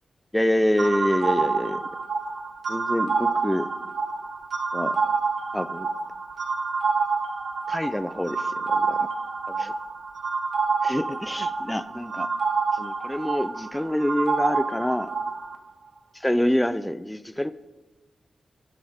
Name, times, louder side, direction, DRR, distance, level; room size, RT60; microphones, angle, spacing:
voice 1, 0.3-1.8 2.7-3.7 4.7-5.0 5.5-5.9 7.7-9.1 9.5-9.7 10.8-12.3 12.7-15.1 16.2-17.5, left 1 dB, 5° left, 13 dB, 0.5 m, -26 dB
sound 1, 0.8-15.6, right 4 dB, 60° right, 1.6 m, -27 dB
23.5 x 15.0 x 3.6 m, 1.1 s
wide cardioid pair, 160°, 0 cm